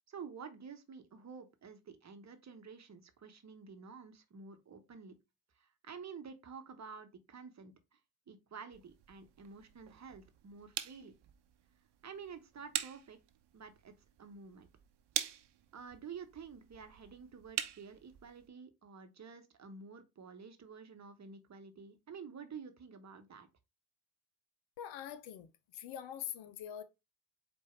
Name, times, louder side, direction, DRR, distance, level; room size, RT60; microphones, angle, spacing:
voice 1, 0.1-5.1 5.6-8.0 8.3-11.1 12.0-13.2 13.5-13.9 14.2-14.7 15.7-23.5, right 5 dB, 35° right, 1.0 m, -50 dB
sound 1, 8.7-18.5, right 11 dB, 55° right, 0.8 m, -45 dB
voice 2, 24.8-26.8, left 10 dB, 65° left, 0.8 m, -44 dB
4.6 x 2.6 x 4.4 m
hypercardioid pair, 50°, 48 cm